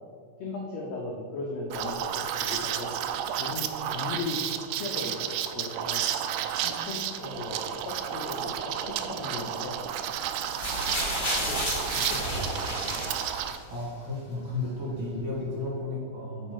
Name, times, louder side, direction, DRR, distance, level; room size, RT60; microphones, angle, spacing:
voice 1, 0.4-2.9 3.4-4.4 4.8-6.0 6.5-9.7 10.7-12.8, left 3 dB, 75° left, -1 dB, 1.6 m, -37 dB
Liquid, 1.7-13.6, right 10 dB, 85° right, 2.2 m, -32 dB
sound 1, 10.5-13.8 14.7-14.8, left 1 dB, 20° left, 1.9 m, -32 dB
voice 2, 13.7-16.5, left 2 dB, 40° right, -7 dB, 2.6 m, -33 dB
8.9 x 5.1 x 4.7 m, 2.1 s
omnidirectional pair, 4.0 m